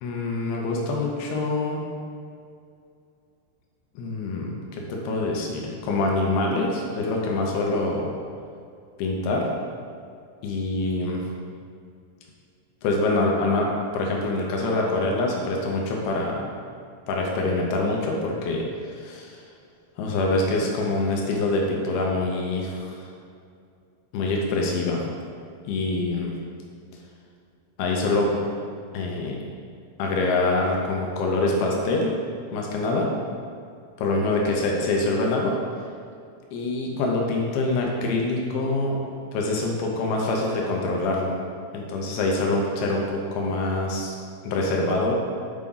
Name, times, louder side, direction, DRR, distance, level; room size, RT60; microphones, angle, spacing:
voice 1, 0.0-1.8 4.0-8.1 9.0-9.5 10.4-11.3 12.8-13.7 13.9-16.4 17.1-19.4 20.0-23.0 24.1-25.0 25.6-26.3 27.8-28.4 28.9-29.4 30.0-32.1 32.5-33.1 34.0-35.5 36.5-39.0 39.3-41.4 41.7-44.1 44.4-45.2, left 2 dB, 75° left, -1 dB, 2.5 m, -25 dB
8.4 x 4.8 x 3.9 m, 2.4 s
omnidirectional pair, 5.2 m